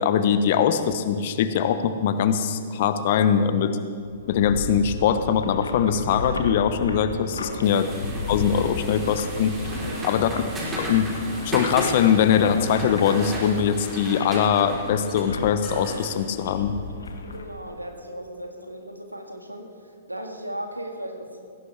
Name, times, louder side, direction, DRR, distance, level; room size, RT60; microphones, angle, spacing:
voice 1, 0.0-3.8 4.3-7.9 8.3-9.5 10.0-10.4 10.8-11.1 11.4-16.7, left 8 dB, 45° left, 11 dB, 0.9 m, -22 dB
sound 1, 4.0-17.4, left 4 dB, 70° left, 1.4 m, -35 dB
voice 2, 7.4-7.8 9.8-10.3 17.2-19.7 20.1-21.4, right 1 dB, 85° right, 3 dB, 1.8 m, -37 dB
sound 2, 7.6-17.2, right 1 dB, 15° right, 3.8 m, -35 dB
19.5 x 16.5 x 3.4 m, 2.2 s
figure-of-eight pair, 110°, 0 cm